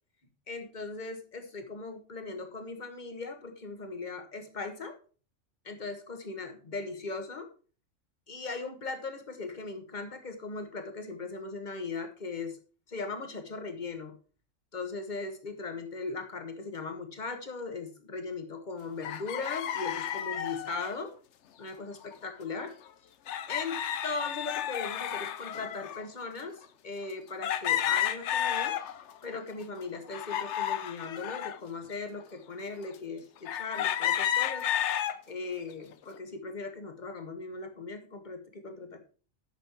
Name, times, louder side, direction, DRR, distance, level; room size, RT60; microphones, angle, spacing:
voice 1, 0.5-4.9 5.6-7.5 8.3-12.6 12.9-14.1 14.7-21.1 21.6-22.7 23.5-28.8 29.2-34.7 35.3-39.0, left 4 dB, 35° left, 6 dB, 1.5 m, -38 dB
sound 1, 19.0-20.9 22.1-22.2 22.5-22.6 23.3-26.1 26.6-26.7 27.4-29.2 29.6-31.6 32.2-32.3 33.5-35.2 35.7-36.1, left 10 dB, 65° left, 0.9 m, -32 dB
10.5 x 6.6 x 4.5 m, 0.39 s
omnidirectional pair, 1.4 m